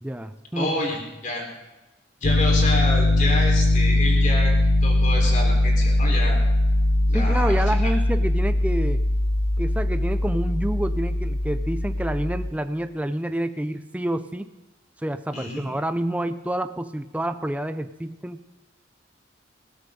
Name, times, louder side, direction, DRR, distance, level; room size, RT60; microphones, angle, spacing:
voice 1, 0.0-0.7 7.1-9.0 9.6-14.5 15.0-18.4, right 1 dB, 5° right, 10 dB, 0.4 m, -28 dB
voice 2, 0.6-1.4 2.2-4.5 4.8-6.4 7.1-7.9 15.3-15.6, left 2 dB, 40° left, 0 dB, 4.1 m, -29 dB
Piano, 2.2-12.5, left 1 dB, 60° left, 0.8 m, -21 dB
19.5 x 16.5 x 3.8 m, 1.1 s
head